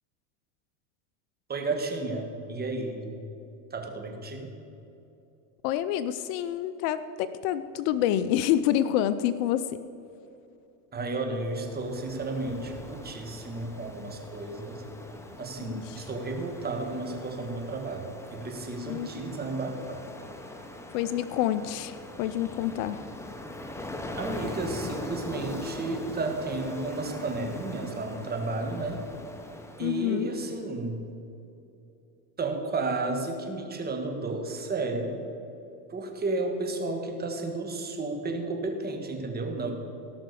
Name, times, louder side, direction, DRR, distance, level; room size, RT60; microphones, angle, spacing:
voice 1, 1.5-3.1 3.7-4.5 10.9-14.8 15.4-20.1 24.2-29.0 29.8-31.1 32.4-35.2 35.9-39.7, right 3 dB, 20° right, 3 dB, 1.8 m, -32 dB
voice 2, 5.6-9.8 15.6-16.0 18.9-19.1 20.9-23.0 29.8-30.3, left 11 dB, 55° left, 13 dB, 0.6 m, -28 dB
Ocean, 11.3-30.5, left 1 dB, 5° left, 1.0 m, -41 dB
17.5 x 5.9 x 6.9 m, 2.8 s
supercardioid pair, 125°, 46 cm